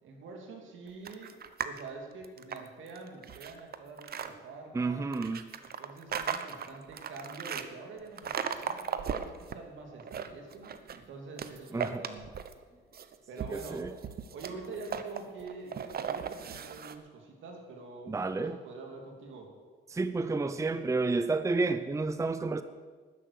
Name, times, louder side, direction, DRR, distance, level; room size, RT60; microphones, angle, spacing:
voice 1, 0.0-5.1 5.6-12.3 13.3-13.9 14.3-19.5, right 3 dB, 75° right, 2 dB, 2.8 m, -46 dB
sound 1, 1.1-1.8 2.2-4.3 5.1-7.7 8.2-9.6 9.9-11.0 11.4-12.6 12.9-17.0, right 7 dB, 50° right, 0.9 m, -37 dB
voice 2, 4.7-5.4 11.7-12.0 13.5-13.9 18.1-18.6 19.9-22.6, right 3 dB, 15° right, 11 dB, 0.6 m, -30 dB
12.0 x 10.5 x 6.6 m, 1.5 s
cardioid pair, 90°, 20 cm